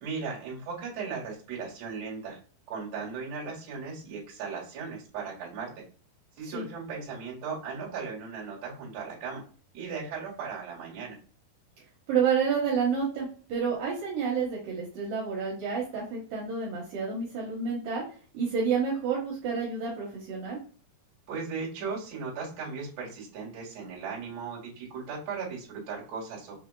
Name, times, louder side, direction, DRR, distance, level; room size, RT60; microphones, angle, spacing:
voice 1, 0.0-2.4 2.7-5.7 6.4-9.4 9.7-11.2 21.3-26.6, right 5 dB, 55° right, -5 dB, 2.7 m, -37 dB
voice 2, 12.1-18.0 18.3-20.6, right 6 dB, 75° right, -4 dB, 2.7 m, -29 dB
6.3 x 2.8 x 2.3 m, 0.42 s
omnidirectional pair, 4.3 m